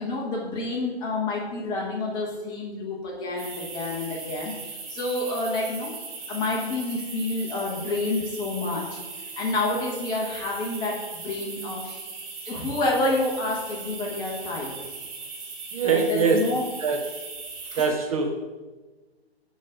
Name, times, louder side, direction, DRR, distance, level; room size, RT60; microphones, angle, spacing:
voice 1, 0.0-4.5 4.9-5.9 6.3-9.0 9.4-12.0 12.4-14.8 15.8-16.7 17.7-17.9, left 2 dB, 15° left, -1 dB, 1.0 m, -28 dB
sound 1, 3.4-17.9, right 4 dB, 20° right, 1.2 m, -38 dB
voice 2, 15.7-16.4 16.8-17.0 17.8-18.6, right 5 dB, 35° right, 3 dB, 0.6 m, -23 dB
9.5 x 3.8 x 5.0 m, 1.2 s
figure-of-eight pair, 130°, 32 cm